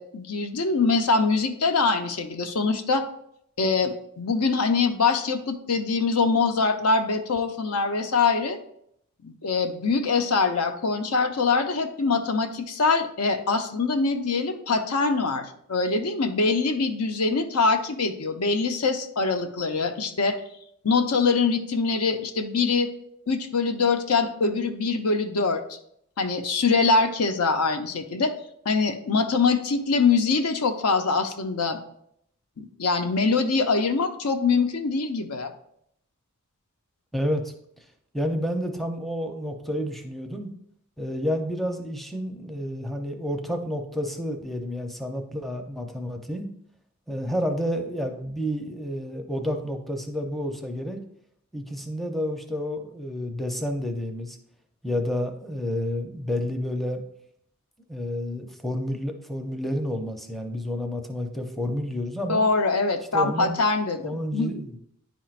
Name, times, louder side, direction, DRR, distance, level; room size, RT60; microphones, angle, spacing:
voice 1, 0.0-3.0 3.6-8.6 9.2-20.4 20.8-22.9 23.3-25.8 26.2-28.3 28.7-31.8 32.6-35.5 62.3-64.5, left 4 dB, 85° left, 7 dB, 0.7 m, -23 dB
voice 2, 37.1-37.5 38.1-40.5 41.0-46.5 47.1-51.0 51.5-54.4 54.8-57.0 57.9-62.4 63.1-63.6 64.0-64.8, equal, ahead, 3 dB, 0.6 m, -30 dB
10.0 x 4.4 x 2.5 m, 0.72 s
head